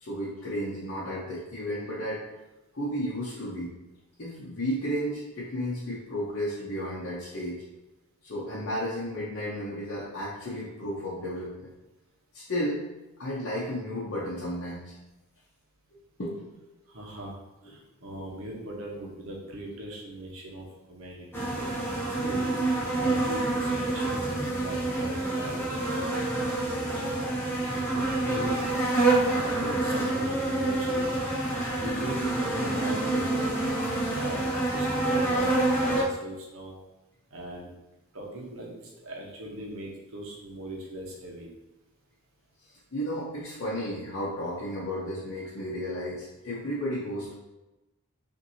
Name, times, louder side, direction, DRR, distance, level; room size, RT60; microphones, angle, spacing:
voice 1, 0.0-2.2 2.7-3.8 4.2-7.6 8.2-11.7 12.3-12.9 13.2-14.9 16.2-16.5 21.6-21.8 31.4-31.7 42.6-47.3, equal, 55° left, -7 dB, 0.8 m, -33 dB
voice 2, 16.9-17.3 17.6-21.5 21.8-26.4 26.8-27.3 27.9-28.5 29.1-31.0 31.8-33.5 34.1-36.8 37.3-37.7 38.1-41.5, right 1 dB, 65° right, -1 dB, 0.9 m, -40 dB
sound 1, 21.3-36.0, right 2 dB, 10° left, 0.8 m, -27 dB
5.7 x 2.6 x 2.7 m, 1.0 s
head